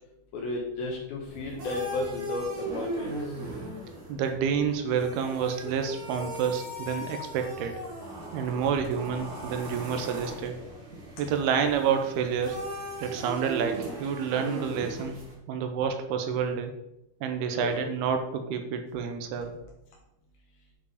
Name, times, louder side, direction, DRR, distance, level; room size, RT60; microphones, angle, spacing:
voice 1, 0.3-3.1 17.5-17.7, left 2 dB, 75° left, -2 dB, 3.0 m, -33 dB
sound 1, 1.3-15.3, right 1 dB, 40° right, 1.4 m, -38 dB
voice 2, 4.1-7.8 8.3-10.6 11.2-12.6 13.0-15.2 15.5-16.7 17.2-19.5, right 7 dB, 85° right, 6 dB, 2.9 m, -29 dB
9.5 x 5.0 x 5.0 m, 0.86 s
omnidirectional pair, 4.5 m